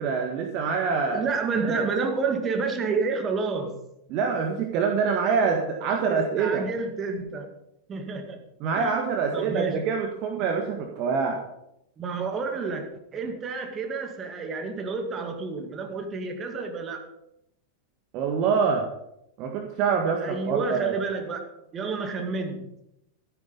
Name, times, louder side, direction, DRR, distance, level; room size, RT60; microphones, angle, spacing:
voice 1, 0.0-1.3 1.6-1.9 4.1-6.7 8.6-11.4 18.1-18.9 19.4-20.9, right 5 dB, 40° right, 3 dB, 1.7 m, -25 dB
voice 2, 1.1-3.8 6.1-7.5 7.9-8.4 8.8-8.9 9.3-9.9 12.0-17.1 20.2-22.7, right 4 dB, 25° right, 4 dB, 2.2 m, -30 dB
13.0 x 10.0 x 5.3 m, 0.82 s
figure-of-eight pair, 90°, 0 cm